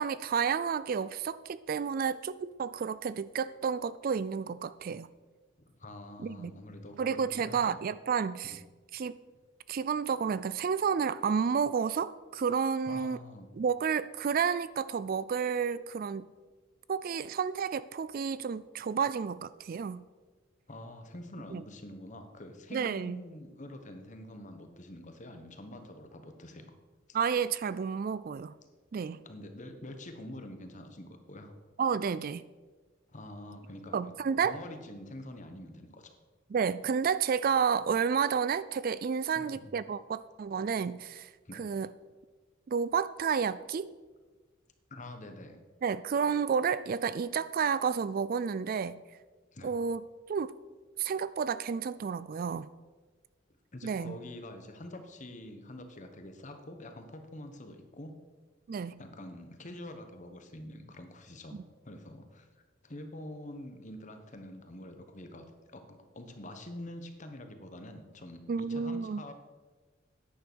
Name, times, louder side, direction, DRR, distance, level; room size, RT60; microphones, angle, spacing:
voice 1, 0.0-5.1 6.2-6.5 7.0-8.6 8.9-9.2 9.7-13.2 13.5-16.3 16.9-20.0 21.5-21.6 22.7-23.2 27.1-28.5 28.9-29.2 31.8-32.4 33.9-34.6 36.5-41.9 42.7-43.9 45.8-49.0 49.6-50.0 50.3-50.5 51.0-52.7 53.8-54.2 58.7-59.0 61.5-61.6 68.5-69.2, right 6 dB, 45° right, 16 dB, 0.3 m, -31 dB
voice 2, 5.6-7.8 8.4-8.6 12.9-13.5 20.7-26.7 27.1-27.2 29.2-31.5 33.1-33.9 34.4-36.2 39.3-39.6 41.4-41.7 44.9-45.6 49.5-49.7 53.7-58.1 59.0-69.3, left 1 dB, 40° left, 7 dB, 1.2 m, -46 dB
10.0 x 8.9 x 6.2 m, 1.3 s
head